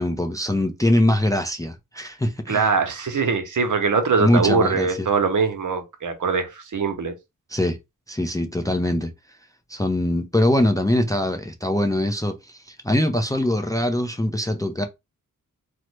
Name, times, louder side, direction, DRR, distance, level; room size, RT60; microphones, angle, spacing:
voice 1, 0.0-2.7 4.2-5.1 7.5-7.8 8.1-9.1 9.7-14.9, left 1 dB, 10° left, 0.4 m, -22 dB
voice 2, 2.5-7.1, right 5 dB, 60° right, 0.8 m, -22 dB
3.1 x 2.1 x 3.1 m
cardioid pair, 60°, 35 cm